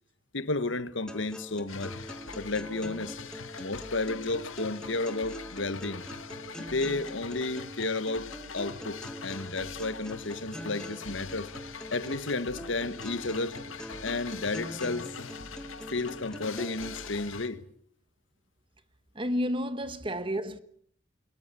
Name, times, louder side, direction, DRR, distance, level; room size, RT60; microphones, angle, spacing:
voice 1, 0.3-2.0 2.3-3.2 3.6-6.1 6.6-11.5 11.9-13.6 14.0-15.1 15.9-17.6, left 3 dB, 70° left, 1.3 m, -32 dB
sound 1, 1.1-17.1, equal, 5° left, 1.7 m, -44 dB
sound 2, 1.7-17.5, left 5 dB, 85° left, 1.9 m, -43 dB
voice 2, 19.1-20.6, equal, 25° right, 1.2 m, -31 dB
23.5 x 21.5 x 8.3 m
head